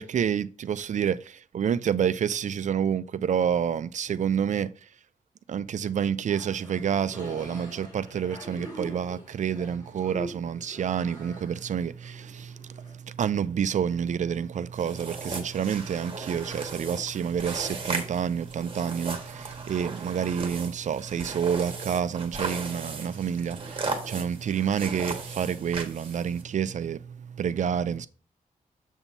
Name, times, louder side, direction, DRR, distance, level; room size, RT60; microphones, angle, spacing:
voice 1, 0.0-4.7 5.5-28.1, right 8 dB, 55° right, 0.4 m, -28 dB
sound 1, 6.3-13.0, equal, 25° left, 4.2 m, -44 dB
sound 2, 14.7-26.4, right 4 dB, 40° right, 1.5 m, -37 dB
7.1 x 7.1 x 2.7 m
wide cardioid pair, 130°, 15 cm